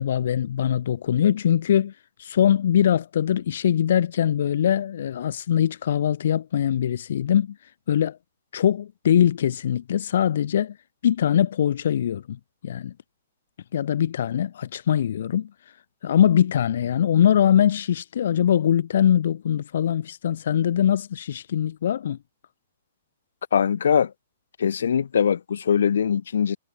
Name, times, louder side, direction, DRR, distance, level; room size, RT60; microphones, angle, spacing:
voice 1, 0.0-1.9 2.2-7.6 7.9-8.2 8.5-10.8 11.0-12.9 13.7-15.5 16.0-22.2, left 9 dB, 55° left, 2.4 m, -22 dB
voice 2, 23.5-24.1 24.6-26.6, left 7 dB, 80° left, 3.4 m, -22 dB
hypercardioid pair, 180°, 0 cm